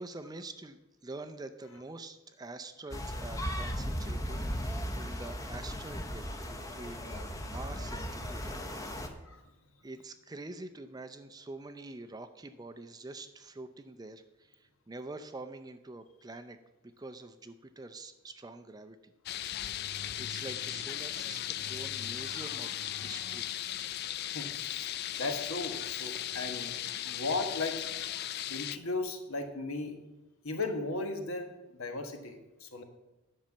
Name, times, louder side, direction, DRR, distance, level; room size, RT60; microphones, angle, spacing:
voice 1, 0.0-8.6 9.8-16.6 17.0-19.1 20.2-23.5 27.0-27.2, right 2 dB, 15° right, 9 dB, 0.4 m, -46 dB
sound 1, 2.9-9.1, equal, 15° left, 0.8 m, -37 dB
voice 2, 9.0-9.5 24.3-26.8 27.0-27.9 28.5-30.0 30.4-32.8, left 3 dB, 70° left, 5 dB, 1.4 m, -36 dB
sound 2, 19.3-28.8, left 12 dB, 45° left, 0.3 m, -37 dB
10.5 x 5.6 x 7.3 m, 0.99 s
head